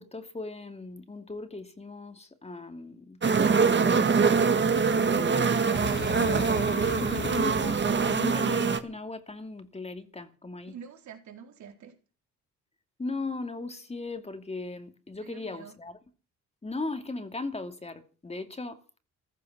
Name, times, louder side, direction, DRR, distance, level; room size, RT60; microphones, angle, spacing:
voice 1, 0.0-4.7 5.1-6.1 6.7-10.8 13.0-16.0 16.6-18.8, left 3 dB, 20° left, 2.5 m, -38 dB
sound 1, 3.2-8.8, right 5 dB, 35° right, 1.9 m, -24 dB
Boom, 5.7-8.5, left 7 dB, 70° left, 2.9 m, -38 dB
voice 2, 10.7-12.0 15.2-15.7, right 7 dB, 70° right, 4.2 m, -47 dB
15.5 x 14.0 x 6.0 m
cardioid pair, 90°, 30 cm